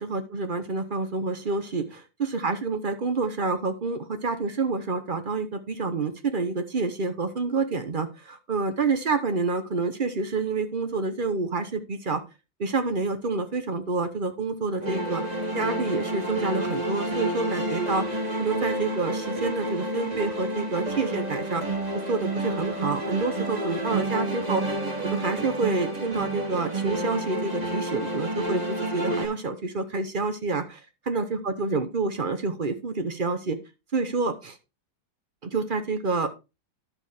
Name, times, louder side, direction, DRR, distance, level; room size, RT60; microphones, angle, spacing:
voice 1, 0.0-12.2 12.6-15.2 15.5-18.1 18.4-21.6 21.9-24.6 25.0-33.6 33.9-34.6 35.4-36.3, right 3 dB, 40° right, 8 dB, 0.8 m, -28 dB
sound 1, 14.8-29.3, right 1 dB, 20° right, 2.0 m, -29 dB
11.0 x 7.0 x 3.4 m, 0.27 s
omnidirectional pair, 2.0 m